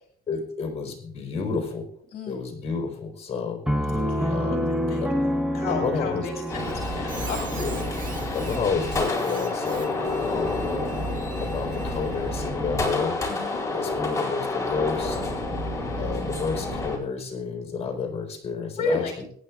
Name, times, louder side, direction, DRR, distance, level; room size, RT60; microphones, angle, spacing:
voice 1, 0.3-1.9 2.3-5.1 5.7-6.3 7.5-10.7 11.4-15.3 15.9-19.2, left 5 dB, 40° left, 3 dB, 3.9 m, -31 dB
Piano, 3.7-9.2, equal, 5° right, 1.0 m, -28 dB
voice 2, 3.9-5.3 5.5-7.5 13.3-13.6 18.8-19.1, left 3 dB, 60° left, 2 dB, 2.2 m, -33 dB
sound 1, 6.5-17.0, left 2 dB, 20° left, 4.0 m, -29 dB
Squeak, 6.5-12.5, right 6 dB, 50° right, 2.0 m, -44 dB
24.0 x 9.7 x 2.4 m, 0.62 s
cardioid pair, 110°, 17 cm